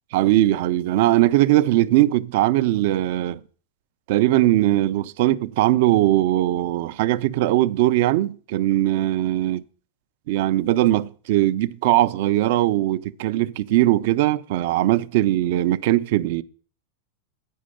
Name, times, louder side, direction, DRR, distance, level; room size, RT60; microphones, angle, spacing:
voice 1, 0.1-3.4 4.1-9.6 10.3-16.4, right 15 dB, 50° right, 0.4 m, -20 dB
9.3 x 5.2 x 6.3 m
supercardioid pair, 165°, 0 cm